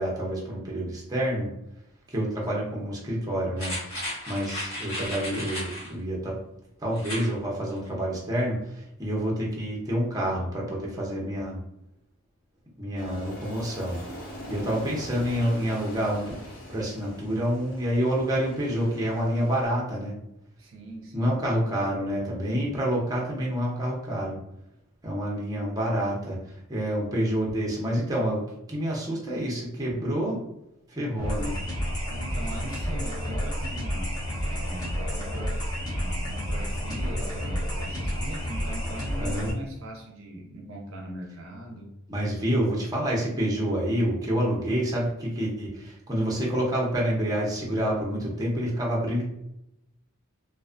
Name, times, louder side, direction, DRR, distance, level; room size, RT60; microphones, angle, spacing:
voice 1, 0.0-1.5 2.1-6.4 6.8-11.6 12.8-14.0 14.5-16.3 16.7-20.2 21.1-24.4 25.0-30.4 30.9-31.6 39.2-39.5 42.1-49.2, equal, 15° right, -4 dB, 0.6 m, -28 dB
voice 2, 2.2-2.6 20.6-21.3 32.1-41.9, right 1 dB, 65° right, 1 dB, 0.5 m, -41 dB
sound 1, 3.6-5.9 6.9-7.3 7.7-7.8, left 1 dB, 65° left, 1.3 m, -34 dB
Aircraft, 13.0-19.7, left 1 dB, 45° left, 1.0 m, -42 dB
sound 2, 31.2-39.5, equal, 20° left, 0.6 m, -30 dB
2.4 x 2.3 x 2.4 m, 0.84 s
head